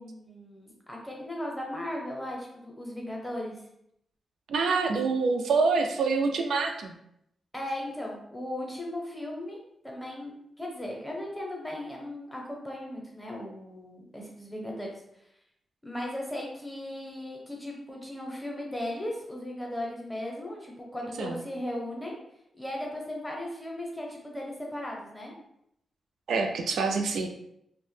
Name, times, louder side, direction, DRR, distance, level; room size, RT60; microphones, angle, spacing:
voice 1, 0.0-3.6 7.5-9.6 9.8-14.9 15.8-22.2 22.6-25.3, left 1 dB, 10° left, -1 dB, 0.6 m, -37 dB
voice 2, 4.5-6.9 21.2-21.4 26.3-27.3, right 4 dB, 80° right, 4 dB, 0.3 m, -26 dB
2.7 x 2.0 x 3.1 m, 0.77 s
wide cardioid pair, 140°, 0 cm